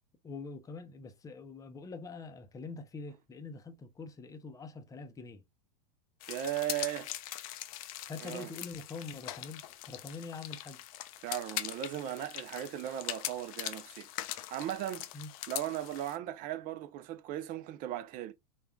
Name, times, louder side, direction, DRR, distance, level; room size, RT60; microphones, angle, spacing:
voice 1, 0.2-5.4 8.0-10.8 15.1-15.3, left 4 dB, 15° left, 0.6 m, -44 dB
sound 1, 6.2-16.2, left 14 dB, 60° left, 0.4 m, -42 dB
voice 2, 6.3-7.1 8.2-8.5 11.2-14.1 14.5-15.1 15.5-18.3, right 12 dB, 45° right, 0.5 m, -37 dB
3.5 x 2.3 x 2.2 m
hypercardioid pair, 105°, 20 cm